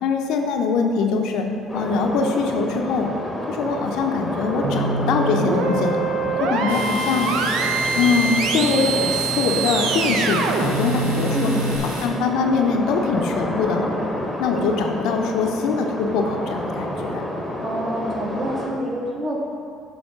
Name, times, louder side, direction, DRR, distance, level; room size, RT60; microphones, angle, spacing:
voice 1, 0.0-1.5 1.7-3.1 3.5-6.0 6.4-7.3 7.9-11.5 11.8-13.9 14.4-17.2, left 4 dB, 70° left, 3 dB, 0.5 m, -22 dB
sound 1, 1.7-18.7, left 1 dB, 5° left, 1.0 m, -30 dB
sound 2, 4.6-11.8, right 4 dB, 70° right, 0.5 m, -24 dB
Domestic sounds home sounds, 6.7-12.1, right 1 dB, 85° right, 0.8 m, -33 dB
voice 2, 11.3-11.8 17.6-19.4, right 1 dB, 35° right, -3 dB, 1.3 m, -27 dB
7.1 x 2.9 x 5.5 m, 2.4 s
hypercardioid pair, 65°, 0 cm